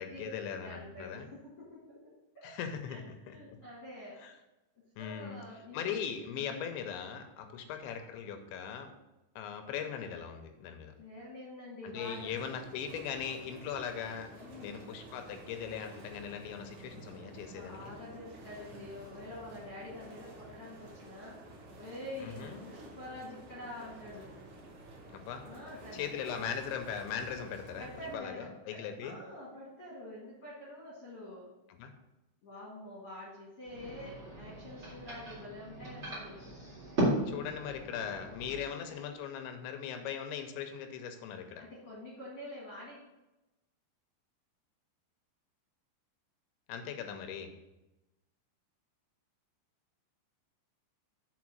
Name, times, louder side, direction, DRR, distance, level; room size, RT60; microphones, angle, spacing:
voice 1, 0.0-1.3 2.4-3.4 4.2-4.3 5.0-5.4 5.7-8.9 9.4-10.9 11.8-14.3 14.6-17.9 22.2-22.6 25.1-25.4 25.9-27.9 28.1-29.2 31.8-31.9 37.3-41.6 46.7-47.5, left 8 dB, 80° left, 6 dB, 2.9 m, -39 dB
voice 2, 0.6-2.6 2.9-3.0 3.3-4.2 5.0-5.9 6.3-6.5 7.4-7.6 11.0-12.4 14.3-14.9 17.4-21.4 21.8-24.3 25.4-26.0 26.3-26.4 27.8-31.5 32.4-36.4 38.8-39.0 41.6-43.0, left 1 dB, 50° left, -7 dB, 1.8 m, -47 dB
sound 1, 12.0-28.2, right 2 dB, 55° right, 3.1 m, -51 dB
sound 2, 33.6-38.7, right 1 dB, 30° right, 1.2 m, -36 dB
7.2 x 4.5 x 6.1 m, 0.99 s
omnidirectional pair, 5.5 m